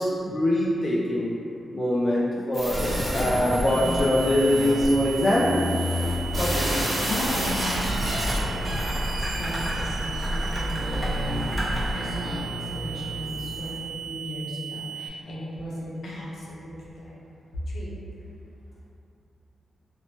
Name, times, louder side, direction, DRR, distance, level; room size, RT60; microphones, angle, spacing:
voice 1, 0.0-1.4 1.7-5.7 6.4-6.8, left 1 dB, 45° left, -6 dB, 0.3 m, -23 dB
sound 1, 2.5-13.7, equal, 25° right, 0.9 m, -30 dB
sound 2, 3.7-15.1, right 10 dB, 75° right, 0.3 m, -38 dB
sound 3, 6.0-11.9, equal, 5° left, 0.7 m, -31 dB
voice 2, 6.9-8.0 8.2-8.8 9.2-17.1 17.7-17.9, left 1 dB, 85° left, -7 dB, 0.7 m, -36 dB
2.7 x 2.1 x 3.0 m, 2.7 s
cardioid pair, 85°, 0 cm